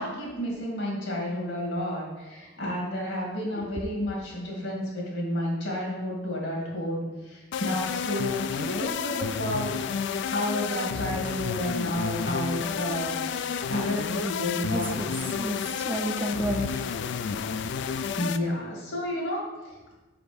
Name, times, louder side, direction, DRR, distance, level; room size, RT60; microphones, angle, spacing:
voice 1, 0.0-15.0 17.9-19.5, left 1 dB, 80° left, -2 dB, 2.2 m, -31 dB
sound 1, 7.5-18.4, left 6 dB, 65° left, 0.3 m, -31 dB
voice 2, 14.7-15.1 15.4-16.9, right 1 dB, 10° right, 2 dB, 0.5 m, -31 dB
5.2 x 4.9 x 5.1 m, 1.2 s
head